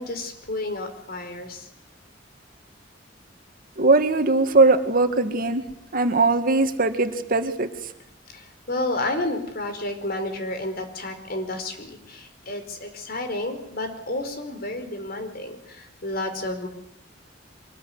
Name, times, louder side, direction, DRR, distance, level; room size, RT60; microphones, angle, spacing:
voice 1, 0.0-1.7 8.3-16.7, left 2 dB, 55° left, 7 dB, 4.7 m, -31 dB
voice 2, 3.8-5.6 5.9-7.7, right 3 dB, 50° right, 7 dB, 2.1 m, -20 dB
24.0 x 21.0 x 9.6 m, 0.79 s
head